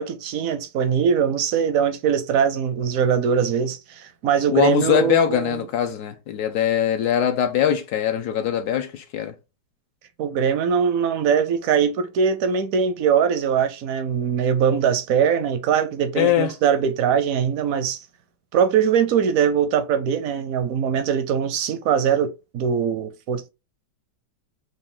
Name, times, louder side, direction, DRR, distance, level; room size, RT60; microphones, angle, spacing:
voice 1, 0.0-5.7 10.2-18.0 18.5-23.5, right 7 dB, 70° right, 0.8 m, -21 dB
voice 2, 4.5-9.3 16.2-16.5, left 10 dB, 70° left, 1.0 m, -22 dB
4.9 x 2.4 x 3.6 m
omnidirectional pair, 1.9 m